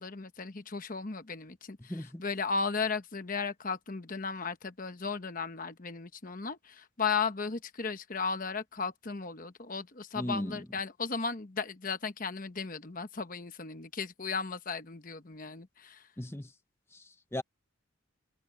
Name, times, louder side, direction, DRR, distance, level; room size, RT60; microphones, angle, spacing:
voice 1, 0.0-16.1, left 5 dB, 40° left, 1.0 m, -35 dB
voice 2, 1.9-2.2 10.1-10.6 16.2-16.5 16.9-17.4, left 1 dB, 10° left, 0.8 m, -37 dB
head